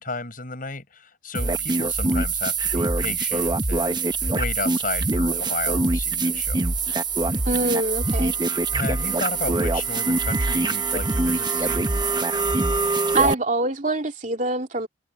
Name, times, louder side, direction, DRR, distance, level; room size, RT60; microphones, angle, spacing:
voice 1, 0.0-6.6 8.7-11.9, left 3 dB, 50° left, 7.0 m, -33 dB
sound 1, 1.3-13.3, right 3 dB, 25° right, 1.0 m, -24 dB
voice 2, 7.4-8.3 13.1-14.9, right 2 dB, 45° right, 2.7 m, -24 dB
head